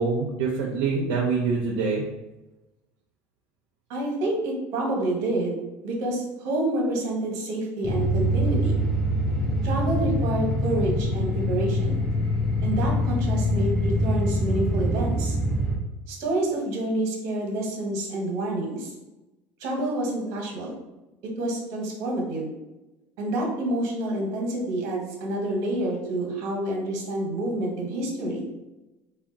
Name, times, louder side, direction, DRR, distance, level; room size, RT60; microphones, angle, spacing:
voice 1, 0.0-2.0, right 4 dB, 80° right, -3 dB, 0.5 m, -25 dB
voice 2, 3.9-8.8 9.6-12.0 12.6-15.4 16.1-18.9 19.6-20.8 21.4-22.5 23.2-28.4, right 1 dB, 65° right, 0 dB, 0.9 m, -28 dB
sound 1, 7.8-15.8, equal, 10° left, 0.6 m, -24 dB
3.5 x 2.2 x 2.5 m, 1.0 s
cardioid pair, 135°, 6 cm